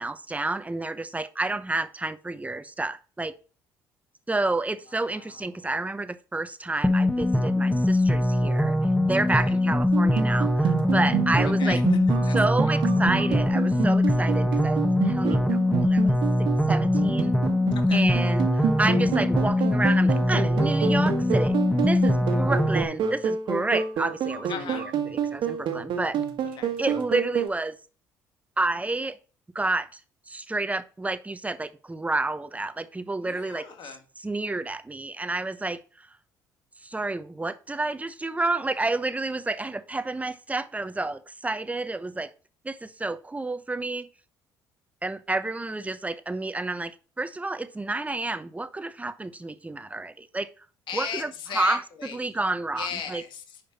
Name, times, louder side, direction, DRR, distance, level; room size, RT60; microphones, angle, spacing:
voice 1, 0.0-3.3 4.3-8.8 9.1-11.8 12.3-16.2 16.7-17.3 17.9-21.6 21.8-26.2 26.8-27.8 28.6-29.2 29.5-30.0 30.3-33.7 34.2-36.1 36.8-42.3 42.6-44.1 45.0-50.5 50.9-51.8 52.1-53.2, right 2 dB, 15° right, 12 dB, 0.9 m, -30 dB
voice 2, 4.9-5.7 9.3-9.5 11.4-12.4 12.6-12.7 17.7-18.4 24.5-24.9 26.6-26.8 33.2-34.0 50.9-52.4 52.7-53.6, left 7 dB, 60° left, 6 dB, 1.7 m, -38 dB
sound 1, 6.8-22.8, left 1 dB, 5° left, 1.5 m, -22 dB
sound 2, 9.9-27.5, right 7 dB, 60° right, 1.6 m, -29 dB
10.0 x 5.2 x 4.2 m, 0.37 s
hypercardioid pair, 55°, 9 cm